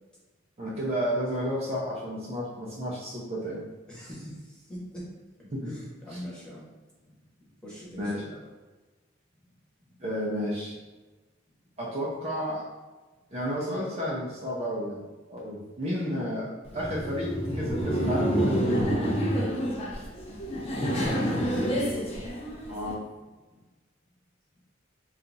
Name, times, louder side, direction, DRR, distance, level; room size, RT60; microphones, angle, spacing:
voice 1, 0.6-3.6 5.5-5.7 6.1-6.2 8.0-8.1 10.0-10.7 11.8-12.6 13.3-15.0 15.3-18.8 22.7-23.0, equal, 30° right, -5 dB, 0.5 m, -32 dB
voice 2, 3.9-5.0 5.7-6.6 7.4-8.3 16.0-16.2 20.9-21.8 23.5-23.6, equal, 5° left, -7 dB, 0.9 m, -41 dB
Laughter, 16.7-22.9, equal, 30° left, 0.5 m, -28 dB
2.7 x 2.4 x 3.9 m, 1.2 s
head